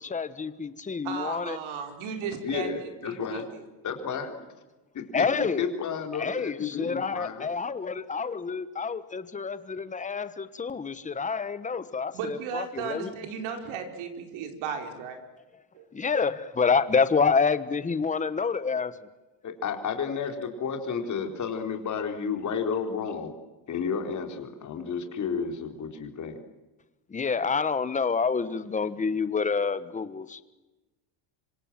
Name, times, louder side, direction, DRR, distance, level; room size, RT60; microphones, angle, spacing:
voice 1, 0.0-1.6 5.1-5.7 6.1-13.1 15.9-18.9 27.1-30.4, left 5 dB, 15° left, 13 dB, 1.2 m, -28 dB
voice 2, 1.0-3.6 12.1-15.2 15.7-15.9, right 6 dB, 70° right, 5 dB, 4.8 m, -35 dB
voice 3, 2.4-3.5 3.8-4.5 4.9-7.5 19.4-23.3 23.7-26.4, left 6 dB, 35° left, 5 dB, 4.2 m, -32 dB
26.0 x 26.0 x 7.6 m, 1.1 s
cardioid pair, 150°, 50 cm